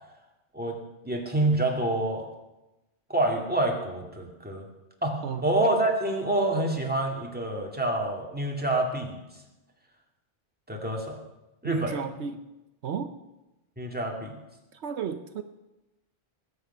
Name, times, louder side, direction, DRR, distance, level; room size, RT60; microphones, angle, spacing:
voice 1, 1.0-2.3 3.1-4.6 5.0-9.2 10.7-11.2 11.6-11.9 13.8-14.3, right 1 dB, 10° right, 0 dB, 2.1 m, -27 dB
voice 2, 11.6-12.4 12.8-13.1 14.7-15.4, right 7 dB, 75° right, 9 dB, 1.0 m, -33 dB
20.0 x 8.3 x 5.5 m, 1.0 s
omnidirectional pair, 1.2 m